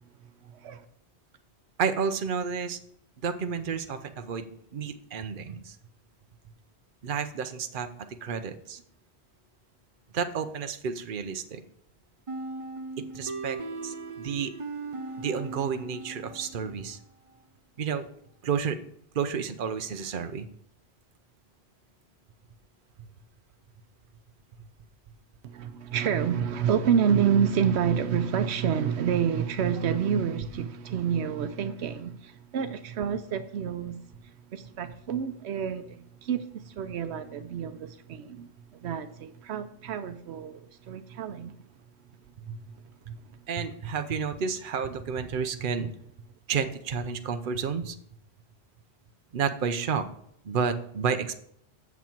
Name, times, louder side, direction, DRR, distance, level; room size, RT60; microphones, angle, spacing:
voice 1, 0.4-0.8 25.4-41.5, right 8 dB, 85° right, 0.9 m, -28 dB
voice 2, 1.8-2.8 3.2-4.5 4.7-5.8 7.0-7.9 8.2-8.8 10.1-11.6 13.0-14.5 15.2-17.0 17.8-18.0 18.4-18.8 19.1-20.5 42.5-42.6 43.1-43.2 43.5-45.9 46.5-48.0 49.3-50.0 50.4-51.4, right 6 dB, 55° right, 0.9 m, -31 dB
sound 1, 12.3-16.9, right 3 dB, 35° right, 0.6 m, -38 dB
8.3 x 7.1 x 4.5 m
omnidirectional pair, 1.1 m